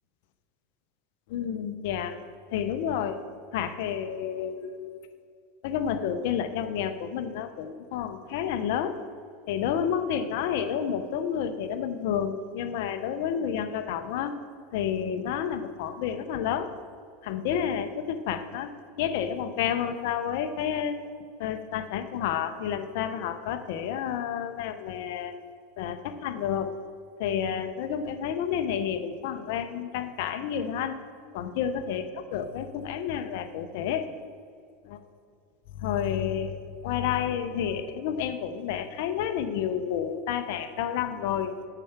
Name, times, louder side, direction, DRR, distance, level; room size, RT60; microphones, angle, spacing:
voice 1, 1.3-2.2 2.5-3.2 3.5-5.0 5.6-9.0 9.5-14.3 14.7-16.7 17.2-18.7 19.0-21.0 21.4-25.3 25.8-26.7 27.2-30.9 31.3-34.1 34.8-35.0 35.8-36.6 36.8-41.5, left 8 dB, 70° left, 9 dB, 0.7 m, -30 dB
7.1 x 5.7 x 7.1 m, 2.3 s
supercardioid pair, 120°, 0 cm